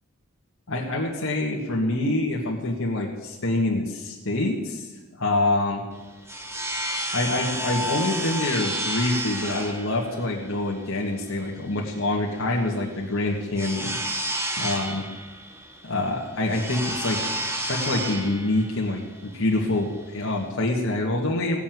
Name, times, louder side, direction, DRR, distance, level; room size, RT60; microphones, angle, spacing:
voice 1, 0.7-4.9 5.2-5.8 7.1-14.0 14.6-15.1 15.8-21.6, left 2 dB, 65° left, -1 dB, 1.8 m, -26 dB
sound 1, 5.9-20.5, right 1 dB, 10° right, 1.5 m, -31 dB
17.0 x 7.0 x 9.3 m, 1.2 s
head